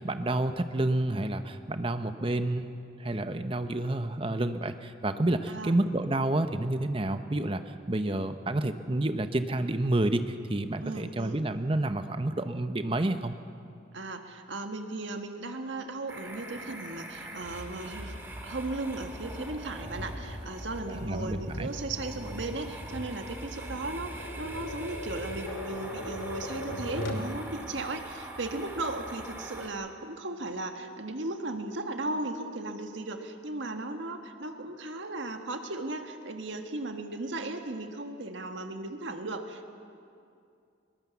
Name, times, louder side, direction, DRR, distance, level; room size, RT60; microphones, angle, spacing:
voice 1, 0.0-2.7 3.0-13.3 20.9-21.7, right 1 dB, 30° right, 9 dB, 0.8 m, -29 dB
voice 2, 10.8-11.4 13.9-18.2 18.4-39.7, right 2 dB, 75° right, 5 dB, 1.6 m, -36 dB
sound 1, 16.1-29.7, right 1 dB, 10° right, 2.0 m, -42 dB
Tap, 19.8-27.3, left 1 dB, 85° left, 2.5 m, -40 dB
21.5 x 20.0 x 7.1 m, 2.4 s
head